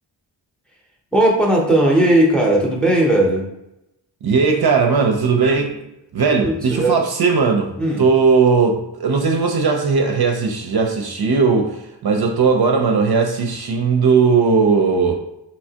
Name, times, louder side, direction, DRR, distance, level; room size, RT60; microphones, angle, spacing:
voice 1, 1.1-3.5 6.4-7.0 7.8-8.0, right 1 dB, ahead, -1 dB, 0.7 m, -16 dB
voice 2, 4.2-5.8 6.1-7.7 8.0-11.8 12.0-15.2, right 5 dB, 55° right, 2 dB, 0.5 m, -17 dB
3.2 x 2.9 x 2.8 m, 0.86 s
wide cardioid pair, 95°, 45 cm